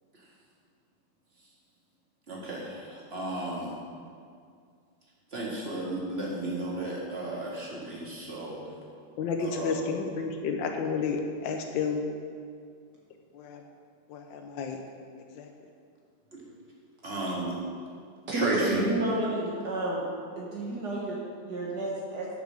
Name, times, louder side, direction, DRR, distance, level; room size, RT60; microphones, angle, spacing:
voice 1, 2.3-3.7 5.3-8.6 9.4-9.8 17.0-17.5 18.3-18.8, right 1 dB, 35° right, -5 dB, 2.3 m, -33 dB
voice 2, 9.2-12.0 13.3-13.6 14.1-14.8 15.3-15.5, left 5 dB, 90° left, 4 dB, 1.5 m, -31 dB
voice 3, 18.3-20.0 20.4-22.3, right 2 dB, 65° right, -5 dB, 1.9 m, -31 dB
8.4 x 6.8 x 6.4 m, 2.2 s
omnidirectional pair, 2.0 m